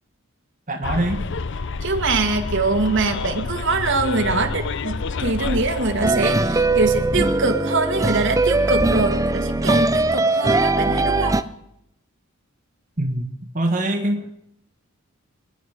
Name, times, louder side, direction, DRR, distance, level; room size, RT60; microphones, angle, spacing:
voice 1, 0.7-1.2 13.0-13.3 13.5-14.3, right 1 dB, 35° right, 3 dB, 1.5 m, -23 dB
Bus, 0.8-6.1, left 4 dB, 55° left, 0.6 m, -28 dB
voice 2, 1.8-11.4, right 3 dB, 55° right, 5 dB, 1.7 m, -23 dB
sound 1, 6.0-11.4, right 2 dB, 15° right, 0.5 m, -20 dB
27.0 x 10.0 x 5.0 m, 0.79 s
head